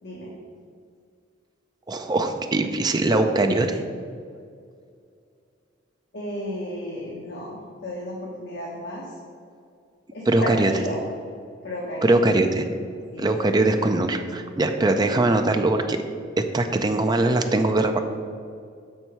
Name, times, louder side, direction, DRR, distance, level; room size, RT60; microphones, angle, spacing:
voice 1, 1.9-3.8 10.3-10.7 12.0-12.6 13.2-16.0 16.5-18.0, right 2 dB, 20° right, 6 dB, 0.5 m, -21 dB
voice 2, 6.1-9.1 10.1-11.0 11.6-12.1 13.1-13.3, equal, 60° left, -5 dB, 1.2 m, -33 dB
6.3 x 4.6 x 5.6 m, 2.3 s
head